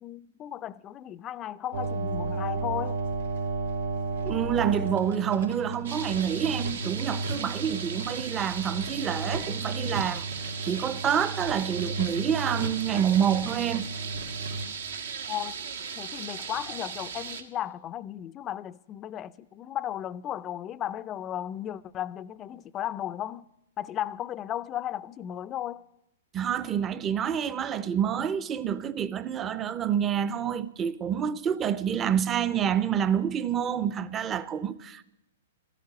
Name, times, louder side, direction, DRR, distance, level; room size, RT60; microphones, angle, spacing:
voice 1, 0.0-3.0 15.3-15.6 16.0-23.5 23.8-25.8, left 11 dB, 25° left, 0.4 m, -35 dB
sound 1, 1.7-14.6, right 3 dB, 90° right, 3.6 m, -34 dB
voice 2, 4.2-10.3 10.6-13.9 26.3-35.0, right 8 dB, 25° right, 0.6 m, -27 dB
sound 2, 5.8-17.4, right 6 dB, 75° right, 1.3 m, -37 dB
13.0 x 9.2 x 9.4 m
hypercardioid pair, 125°, 0 cm